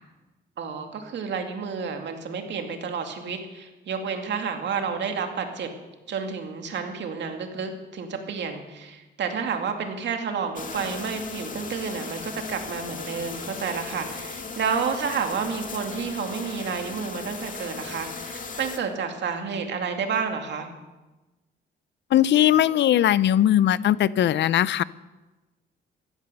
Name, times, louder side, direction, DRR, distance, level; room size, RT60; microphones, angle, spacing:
voice 1, 0.6-5.7 6.1-20.7, right 6 dB, 65° right, 4 dB, 2.4 m, -30 dB
sound 1, 10.6-18.8, left 4 dB, 40° left, 1.9 m, -37 dB
voice 2, 22.1-24.8, left 11 dB, 65° left, 19 dB, 0.6 m, -19 dB
15.0 x 12.5 x 6.9 m, 1.1 s
cardioid pair, 90°, 20 cm